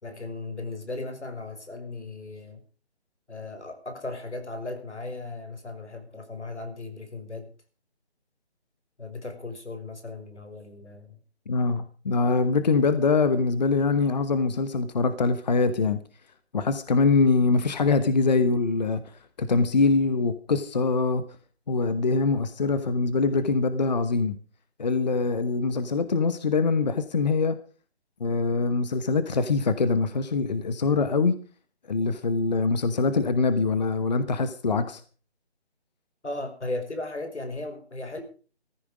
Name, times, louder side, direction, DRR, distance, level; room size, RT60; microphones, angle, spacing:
voice 1, 0.0-2.6 3.3-7.5 9.0-11.2 36.2-38.2, left 2 dB, 85° left, 7 dB, 5.7 m, -36 dB
voice 2, 11.5-16.0 16.5-19.0 19.4-21.2 21.7-24.4 24.8-27.6 28.2-31.4 31.9-35.0, left 4 dB, 40° left, 11 dB, 1.1 m, -23 dB
15.0 x 14.5 x 5.0 m, 0.39 s
figure-of-eight pair, 165°, 33 cm